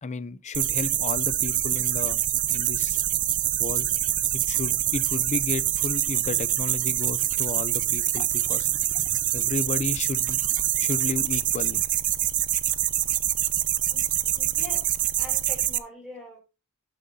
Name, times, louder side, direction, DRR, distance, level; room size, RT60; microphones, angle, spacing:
voice 1, 0.0-2.2 2.5-3.0 3.6-3.9 4.3-8.7 8.9-10.4 10.8-11.8, left 4 dB, 30° left, 0.5 m, -33 dB
sound 1, 0.5-15.8, right 12 dB, 35° right, 0.5 m, -25 dB
voice 2, 13.9-14.9 15.2-16.4, equal, ahead, 3.1 m, -43 dB
12.0 x 7.4 x 2.7 m
head